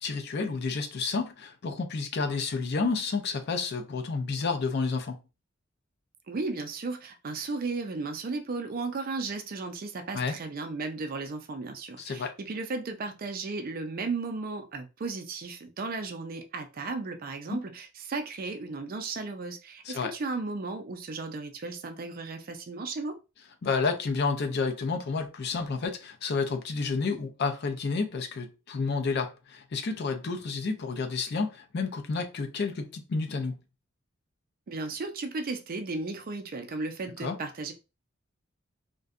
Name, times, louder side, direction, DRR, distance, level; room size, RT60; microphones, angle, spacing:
voice 1, 0.0-5.2 10.1-10.4 12.0-12.3 17.5-17.6 19.8-20.1 23.6-33.5 37.2-37.4, left 4 dB, 55° left, 0.5 m, -30 dB
voice 2, 6.3-23.2 34.7-37.7, right 3 dB, 45° right, 0.4 m, -35 dB
2.6 x 2.2 x 2.4 m
head